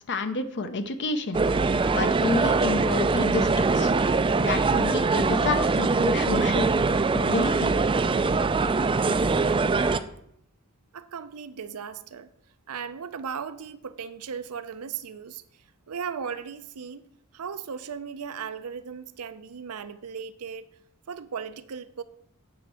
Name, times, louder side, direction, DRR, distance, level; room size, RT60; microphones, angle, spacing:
voice 1, 0.1-3.9 4.4-6.7 7.1-7.7, left 3 dB, 55° left, 0.7 m, -30 dB
sound 1, 1.3-10.0, right 4 dB, 25° right, 0.4 m, -23 dB
voice 2, 10.9-12.3 12.7-15.4 15.9-17.0 17.3-20.7 21.1-22.0, right 6 dB, 80° right, 0.6 m, -37 dB
9.2 x 4.4 x 6.3 m
head